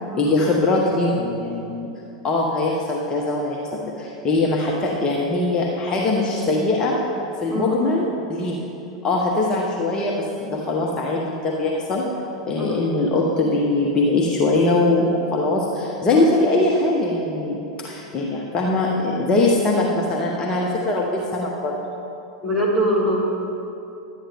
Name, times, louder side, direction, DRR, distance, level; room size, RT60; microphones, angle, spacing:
voice 1, 0.2-1.9 2.2-7.0 7.4-8.0 8.3-8.6 9.0-12.0 12.5-21.8, left 2 dB, 30° left, -2 dB, 1.0 m, -21 dB
voice 2, 22.4-23.4, equal, 5° right, -5 dB, 2.2 m, -22 dB
11.5 x 8.9 x 3.5 m, 2.8 s
figure-of-eight pair, 90°, 3 cm